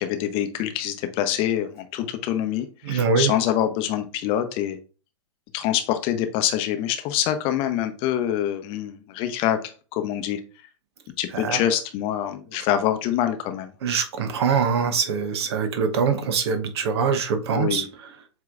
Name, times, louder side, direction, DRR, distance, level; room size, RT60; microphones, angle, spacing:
voice 1, 0.0-4.8 5.5-10.4 11.2-13.7 17.5-17.9, left 11 dB, 35° left, 8 dB, 0.7 m, -25 dB
voice 2, 2.8-3.3 11.3-11.6 13.8-17.8, right 5 dB, 55° right, 8 dB, 0.9 m, -23 dB
7.6 x 2.9 x 2.4 m, 0.35 s
figure-of-eight pair, 100°, 16 cm